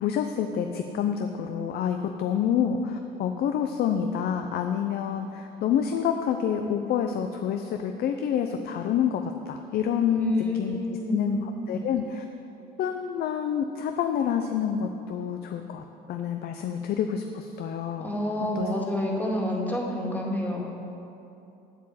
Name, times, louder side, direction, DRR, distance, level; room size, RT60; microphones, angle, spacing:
voice 1, 0.0-10.8 11.1-12.2 12.8-18.1 18.6-18.7, left 8 dB, 65° left, 6 dB, 0.6 m, -28 dB
voice 2, 10.1-11.4 18.0-20.7, left 1 dB, 10° left, -2 dB, 1.9 m, -29 dB
8.2 x 7.6 x 7.4 m, 2.8 s
cardioid pair, 110°, 17 cm